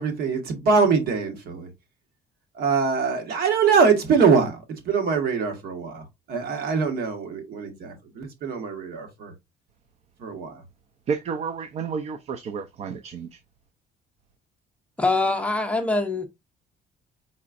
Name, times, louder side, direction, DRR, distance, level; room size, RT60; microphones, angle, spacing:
voice 1, 0.0-1.7 2.5-9.3 10.2-10.6, right 5 dB, 65° right, 1.5 m, -23 dB
voice 2, 11.1-13.4, right 6 dB, 40° right, 0.4 m, -31 dB
voice 3, 15.0-16.3, left 2 dB, 5° left, 0.6 m, -23 dB
4.7 x 4.2 x 2.4 m
cardioid pair, 170°, 17 cm